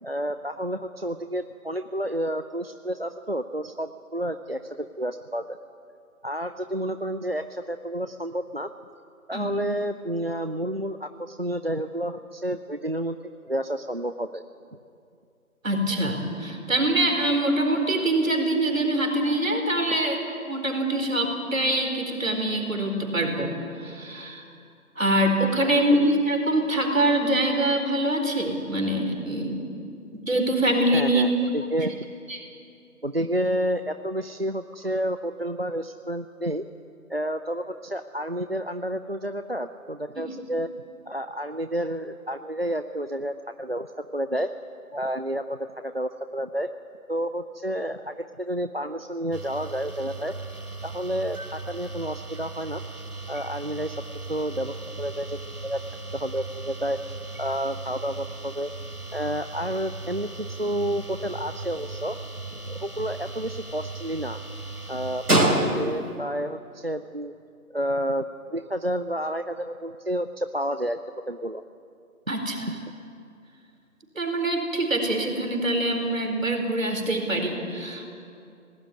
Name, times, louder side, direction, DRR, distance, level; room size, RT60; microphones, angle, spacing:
voice 1, 0.0-5.6 6.2-8.7 9.3-13.2 13.5-14.4 25.6-25.7 30.9-32.0 33.0-36.6 37.1-40.7 41.1-44.5 44.9-46.7 47.1-50.3 50.8-52.8 53.3-54.0 54.3-55.8 56.1-57.0 57.4-58.7 59.1-62.2 62.7-64.4 64.9-67.3 67.7-71.0 71.3-71.6, equal, 45° right, 10 dB, 0.5 m, -30 dB
voice 2, 15.6-20.2 20.5-23.5 23.8-24.4 25.0-29.6 30.3-31.2 32.3-32.4 40.2-40.3 72.3-72.6 74.2-78.2, right 1 dB, 60° right, 4 dB, 4.4 m, -24 dB
sound 1, 49.3-66.2, right 2 dB, 85° right, 3.8 m, -33 dB
18.5 x 18.0 x 9.6 m, 2.5 s
figure-of-eight pair, 165°, 44 cm